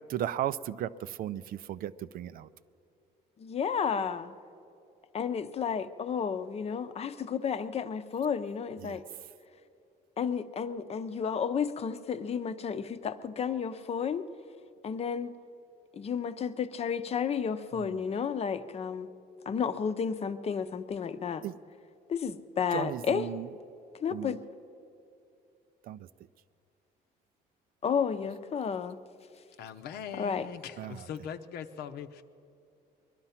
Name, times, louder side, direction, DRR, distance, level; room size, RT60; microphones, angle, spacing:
voice 1, 0.1-2.5 8.8-9.0 17.8-17.9 21.4-21.5 22.7-23.5 24.1-24.3 25.9-26.0 30.8-31.0, right 11 dB, 60° right, 0.4 m, -35 dB
voice 2, 3.4-4.3 5.1-9.0 10.2-14.3 14.8-15.3 15.9-19.1 19.5-21.5 22.1-23.3 24.0-24.4 27.8-29.0 30.1-30.5, left 6 dB, 35° left, 0.7 m, -32 dB
voice 3, 29.6-32.2, left 8 dB, 70° left, 0.8 m, -41 dB
21.0 x 12.0 x 5.8 m
cardioid pair, 110°, 17 cm